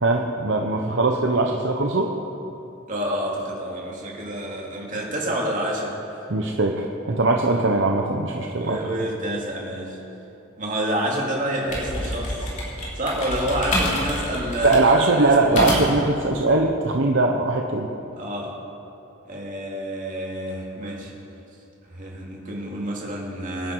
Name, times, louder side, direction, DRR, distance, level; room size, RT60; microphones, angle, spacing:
voice 1, 0.0-2.1 6.3-8.8 14.6-17.9, right 2 dB, 60° right, 2 dB, 0.9 m, -21 dB
voice 2, 2.9-5.9 8.6-10.0 10.6-12.5 12.9-15.8 18.2-18.5 19.3-21.1 21.9-23.7, right 1 dB, 35° right, -3 dB, 2.7 m, -28 dB
sound 1, 11.4-16.1, left 1 dB, 35° left, 3.6 m, -28 dB
24.5 x 10.0 x 4.7 m, 2.9 s
head